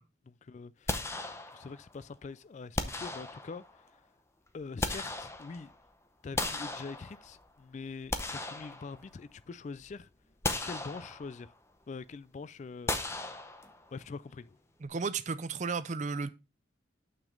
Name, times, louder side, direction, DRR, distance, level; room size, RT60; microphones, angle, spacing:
voice 1, 0.2-1.2 1.5-4.0 4.5-5.7 6.2-10.1 10.6-11.5 11.9-13.3 13.9-14.6, left 4 dB, 35° left, 0.3 m, -44 dB
sound 1, 0.9-1.9 2.8-3.8 4.5-5.8 6.4-7.5 7.9-9.4 9.8-9.9 10.4-11.5 12.9-14.0, left 2 dB, 15° left, 0.6 m, -36 dB
voice 2, 14.8-16.3, right 4 dB, 40° right, 0.5 m, -33 dB
6.9 x 6.0 x 3.8 m
head